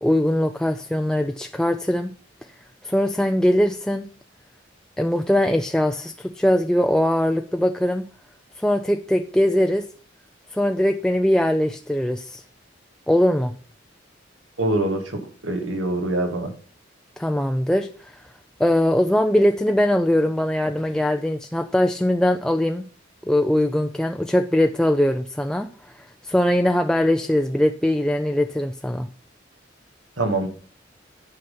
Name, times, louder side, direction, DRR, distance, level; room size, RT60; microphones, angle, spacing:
voice 1, 0.0-2.1 2.8-4.0 5.0-8.0 8.6-9.9 10.5-12.4 13.1-13.6 17.2-18.2 18.6-22.8 23.3-29.1, left 1 dB, 5° left, 5 dB, 0.4 m, -21 dB
voice 2, 14.6-16.5 30.2-30.5, right 2 dB, 85° right, 5 dB, 2.1 m, -24 dB
9.5 x 5.7 x 5.6 m, 0.44 s
head